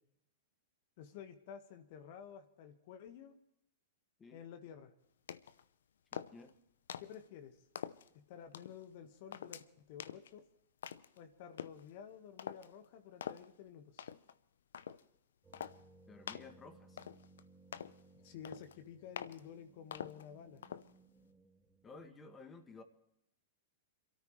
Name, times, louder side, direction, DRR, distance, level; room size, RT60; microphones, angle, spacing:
voice 1, 1.0-3.4 4.3-4.9 7.0-7.6 8.1-10.4 11.1-14.1 18.1-20.6, left 8 dB, 55° left, 7 dB, 1.7 m, -52 dB
sound 1, 5.3-5.6 6.1-6.5 6.9-7.2 7.7-8.1 8.5-8.8 9.3-9.6 10.0-10.3 10.8-11.2 11.6-11.8 12.4-12.7 13.2-13.5 14.0-14.3 14.7-15.0 15.5-15.8 16.3-16.5 17.0-17.4 17.7-18.0 18.4-18.8 19.2-19.4 19.9-20.2 20.6-20.9, left 8 dB, 70° left, 0.7 m, -45 dB
voice 2, 6.1-6.6 16.1-17.0 21.8-22.8, left 3 dB, 20° left, 8 dB, 1.9 m, -54 dB
sound 2, 15.4-22.1, right 2 dB, 10° right, 3.4 m, -64 dB
27.5 x 13.5 x 3.2 m, 0.77 s
hypercardioid pair, 105°, 0 cm